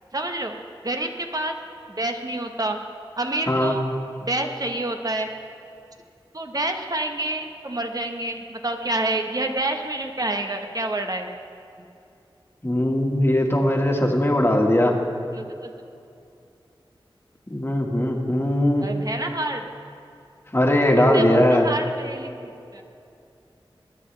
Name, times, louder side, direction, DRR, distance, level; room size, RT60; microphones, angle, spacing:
voice 1, 0.1-0.5 0.8-1.5 2.0-2.8 3.2-3.8 4.2-5.3 6.3-11.3 15.3-15.7 18.8-19.6 21.1-22.8, right 2 dB, 40° right, 4 dB, 1.2 m, -28 dB
voice 2, 3.5-3.8 12.6-14.9 17.5-18.9 20.5-21.7, left 1 dB, 25° left, 1 dB, 1.7 m, -20 dB
22.0 x 9.1 x 3.4 m, 2.6 s
wide cardioid pair, 45°, 9 cm